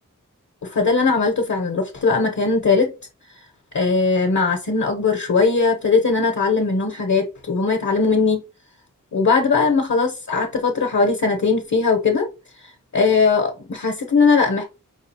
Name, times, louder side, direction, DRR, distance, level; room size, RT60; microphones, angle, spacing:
voice 1, 0.6-2.9 3.7-8.4 9.1-12.3 12.9-14.6, left 4 dB, 60° left, 0.9 m, -19 dB
5.0 x 2.4 x 2.8 m
wide cardioid pair, 40°, 33 cm